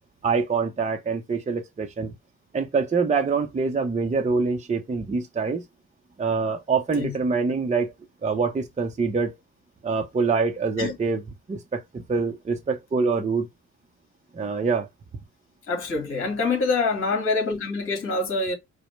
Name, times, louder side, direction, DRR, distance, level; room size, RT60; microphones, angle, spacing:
voice 1, 0.2-2.1 2.5-5.7 6.2-7.9 8.2-9.4 9.8-11.2 11.5-13.5 14.3-14.9, right 4 dB, 25° right, 0.7 m, -25 dB
voice 2, 15.7-18.5, left 3 dB, 45° left, 2.0 m, -25 dB
4.8 x 2.2 x 3.2 m
cardioid pair, 90°, 30 cm